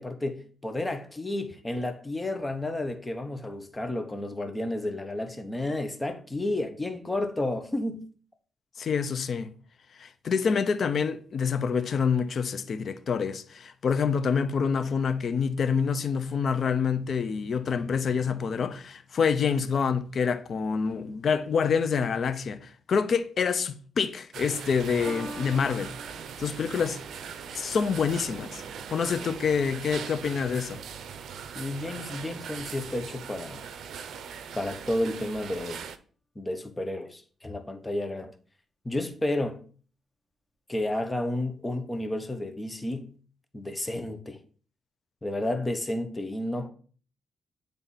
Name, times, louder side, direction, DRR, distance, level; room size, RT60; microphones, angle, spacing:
voice 1, 0.0-8.1 31.5-33.6 34.5-35.9 36.4-38.3 38.8-39.6 40.7-43.1 43.5-44.4 45.2-46.7, left 1 dB, 15° left, 1.0 m, -31 dB
voice 2, 8.8-9.5 10.0-25.9 26.4-27.0 27.5-28.6 28.9-30.8, left 6 dB, 60° left, 0.6 m, -27 dB
sound 1, 24.3-36.0, right 7 dB, 80° right, 0.5 m, -40 dB
Piano, 25.1-31.6 32.5-32.6, equal, ahead, 1.9 m, -48 dB
9.2 x 3.4 x 4.1 m
cardioid pair, 85°, 0 cm